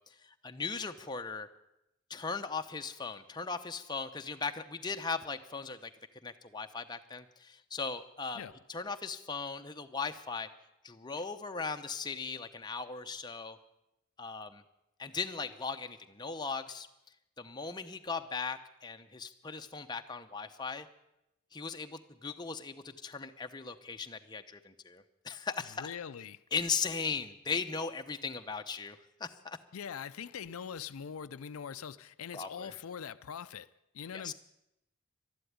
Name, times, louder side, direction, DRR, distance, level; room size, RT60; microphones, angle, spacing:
voice 1, 0.0-1.5 2.1-5.9 6.2-8.4 8.7-10.5 10.8-13.6 14.2-14.6 15.0-16.9 17.4-20.9 21.5-25.9 26.5-29.6 32.3-32.7 34.1-34.3, left 5 dB, 20° left, 0.8 m, -38 dB
voice 2, 25.8-26.4 29.7-33.7 33.9-34.3, left 7 dB, 80° left, 0.5 m, -42 dB
12.5 x 11.5 x 9.4 m
head